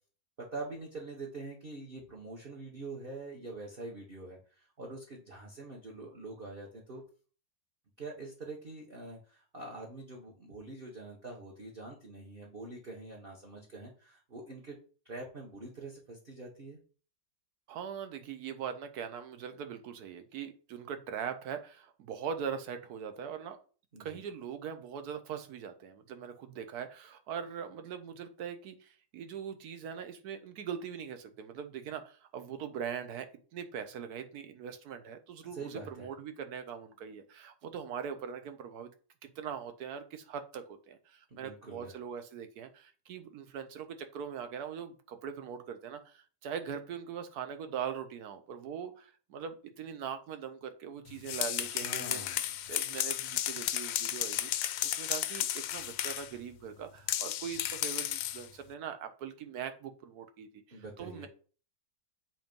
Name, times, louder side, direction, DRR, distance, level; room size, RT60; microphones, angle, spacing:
voice 1, 0.4-7.0 8.0-14.8 15.0-16.8 23.9-24.2 35.5-36.1 41.3-41.9 51.6-52.5 60.7-61.3, right 2 dB, 35° right, -1 dB, 1.2 m, -45 dB
voice 2, 17.7-23.6 24.0-38.9 39.2-52.2 52.7-61.3, right 7 dB, 60° right, 8 dB, 1.3 m, -41 dB
sound 1, 51.1-56.3 57.1-58.5, left 12 dB, 80° left, 1.3 m, -33 dB
7.8 x 3.0 x 5.2 m, 0.39 s
omnidirectional pair, 2.0 m